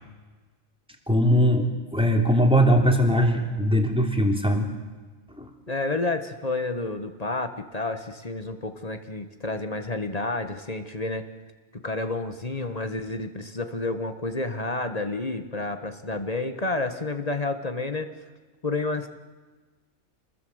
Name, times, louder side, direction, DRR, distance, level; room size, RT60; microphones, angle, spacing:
voice 1, 1.1-4.7 5.4-5.5, equal, 5° right, 3 dB, 3.0 m, -21 dB
voice 2, 5.7-11.3 11.8-18.1 18.6-19.1, left 2 dB, 30° left, 8 dB, 1.4 m, -30 dB
26.5 x 20.0 x 8.0 m, 1.3 s
omnidirectional pair, 1.4 m